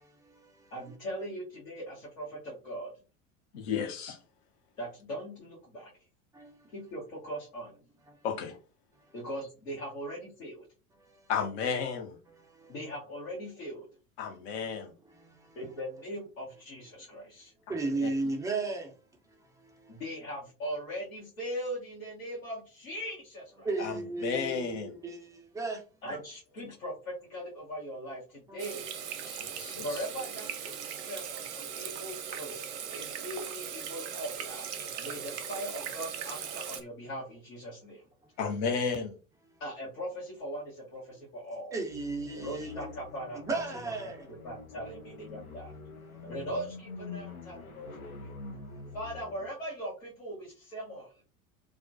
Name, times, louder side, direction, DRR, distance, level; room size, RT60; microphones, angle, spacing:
voice 1, 0.0-0.7 6.3-6.5 11.1-11.2 12.5-12.7 15.2-15.6 17.7-18.9 19.6-19.9 23.6-25.8 28.5-28.7 41.7-42.9 43.5-44.2 46.1-46.3, right 3 dB, 10° right, 0.5 m, -35 dB
voice 2, 0.7-2.9 4.8-5.9 6.7-7.7 9.1-10.7 12.7-13.9 15.6-17.5 19.9-23.7 26.0-28.9 29.8-38.0 39.6-41.7 42.3-45.7 46.2-48.3 48.9-51.1, equal, 70° left, 1.0 m, -40 dB
voice 3, 3.5-4.2 8.2-8.6 11.3-12.2 14.2-14.9 18.0-18.1 23.8-24.9 29.3-30.0 38.4-39.1, left 6 dB, 50° left, 0.7 m, -33 dB
Water tap faucet / Sink (filling or washing), 28.6-36.8, right 8 dB, 55° right, 0.6 m, -39 dB
sound 1, 41.9-49.5, left 4 dB, 90° left, 0.5 m, -46 dB
2.3 x 2.1 x 2.5 m
figure-of-eight pair, 75°, 42 cm